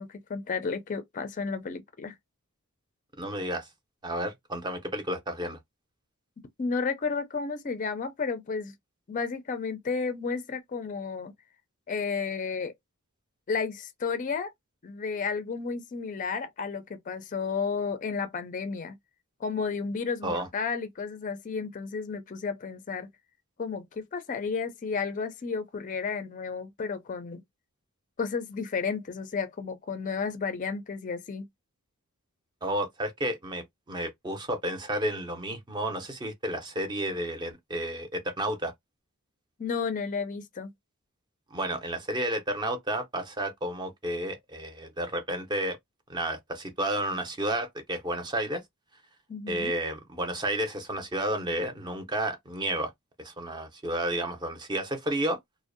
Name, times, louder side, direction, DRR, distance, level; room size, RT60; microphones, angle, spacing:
voice 1, 0.0-2.1 6.6-8.7 9.1-11.3 11.9-12.7 13.5-14.5 14.8-19.0 19.4-23.1 23.6-27.4 28.2-31.5 39.6-40.7 49.3-49.8, left 5 dB, 35° left, 0.4 m, -32 dB
voice 2, 3.2-3.7 4.0-5.6 20.2-20.5 32.6-38.7 41.5-45.8 46.1-48.6 49.5-52.9 53.2-55.4, right 1 dB, 20° right, 0.5 m, -31 dB
2.5 x 2.0 x 2.5 m
head